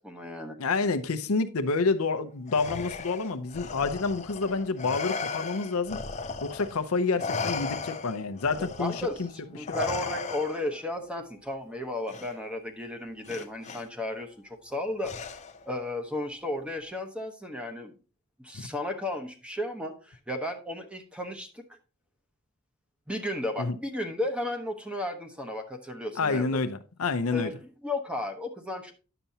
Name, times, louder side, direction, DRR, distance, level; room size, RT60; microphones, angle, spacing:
voice 1, 0.0-0.6 8.6-15.1 15.7-17.9 18.4-21.6 23.1-26.6 27.3-27.5 27.8-28.9, left 1 dB, 5° right, 0.9 m, -34 dB
voice 2, 0.6-6.0 6.4-9.3 9.6-9.8 18.5-18.7 23.6-23.8 26.2-27.5, left 4 dB, 75° left, 0.7 m, -28 dB
Respiratory sounds, 2.5-6.8 7.2-10.8 12.1-12.3 13.3-13.8 15.0-15.7, left 4 dB, 30° left, 0.6 m, -36 dB
10.0 x 6.8 x 2.8 m
head